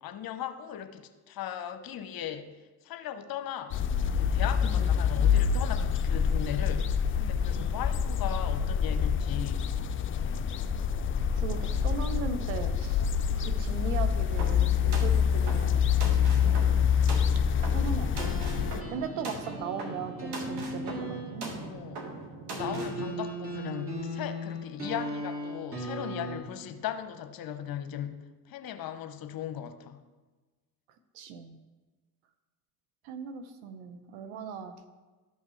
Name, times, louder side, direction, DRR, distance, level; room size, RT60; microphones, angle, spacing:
voice 1, 0.0-9.7 10.0-10.5 21.6-22.1 22.5-30.0, left 10 dB, 50° left, 9 dB, 0.9 m, -38 dB
sound 1, 3.7-18.8, left 7 dB, 30° left, 0.4 m, -26 dB
voice 2, 11.3-13.1 13.3-16.6 17.7-18.4 18.9-21.5 23.0-23.1 31.1-31.6 33.0-34.8, right 6 dB, 75° right, 9 dB, 0.9 m, -38 dB
sound 2, 14.4-23.0, right 2 dB, 55° right, 1.8 m, -40 dB
sound 3, 18.2-21.7 22.6-26.4, equal, 30° right, 2.3 m, -37 dB
13.0 x 5.5 x 3.2 m, 1.3 s
hypercardioid pair, 65°, 46 cm